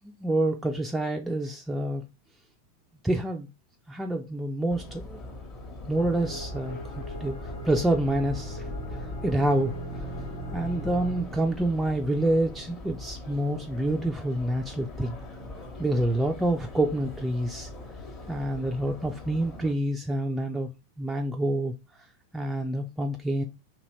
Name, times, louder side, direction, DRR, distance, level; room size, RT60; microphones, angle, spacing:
voice 1, 0.2-2.0 3.0-3.5 3.9-5.2 5.9-6.8 7.2-7.4 7.7-8.6 9.2-9.7 10.5-15.2 15.8-17.7 18.3-20.7 21.0-21.7 22.3-23.4, right 1 dB, 5° right, 0.3 m, -27 dB
Subway metro underground, 4.7-19.7, left 2 dB, 30° left, 1.0 m, -41 dB
sound 1, 5.9-11.2, right 1 dB, 65° left, 1.0 m, -39 dB
2.7 x 2.6 x 3.0 m
figure-of-eight pair, 90°, 0 cm